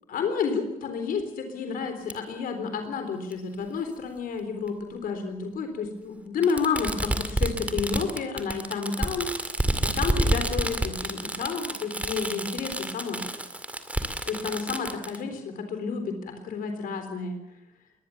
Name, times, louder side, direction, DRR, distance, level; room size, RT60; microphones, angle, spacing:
voice 1, 0.1-1.2 1.5-9.3 9.8-13.2 14.3-17.4, left 5 dB, 80° left, 7 dB, 3.8 m, -30 dB
Fireworks, 2.1-2.2 3.3-3.4 4.7-4.8 6.4-15.2, right 1 dB, 10° right, 2.2 m, -29 dB
22.5 x 20.0 x 7.1 m, 0.87 s
cardioid pair, 140°, 14 cm